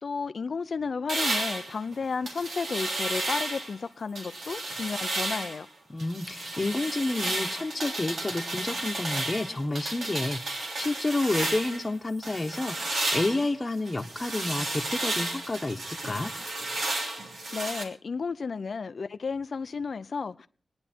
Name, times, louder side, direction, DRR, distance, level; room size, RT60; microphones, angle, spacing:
voice 1, 0.0-5.7 17.5-20.5, left 5 dB, 65° left, 0.6 m, -33 dB
sound 1, 1.1-3.8 4.2-5.6 6.0-11.9 12.2-17.8, right 2 dB, 85° right, 3.4 m, -32 dB
voice 2, 5.9-16.3, left 2 dB, 30° left, 1.1 m, -30 dB
25.0 x 9.7 x 4.5 m
cardioid pair, 60°, 0 cm